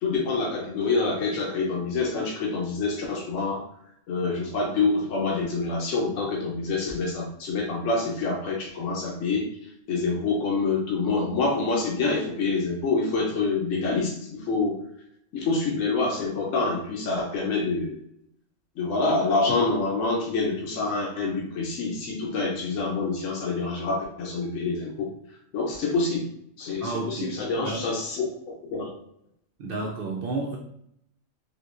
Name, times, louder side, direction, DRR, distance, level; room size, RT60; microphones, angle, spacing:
voice 1, 0.0-3.6 4.1-9.5 9.9-14.8 15.3-18.0 18.8-25.1 25.5-26.3 26.6-28.3 28.7-28.9, left 3 dB, 75° left, -1 dB, 1.0 m, -26 dB
voice 2, 26.8-27.9 29.6-30.6, right 3 dB, 65° right, 0 dB, 0.6 m, -31 dB
3.5 x 2.8 x 2.4 m, 0.72 s
omnidirectional pair, 1.4 m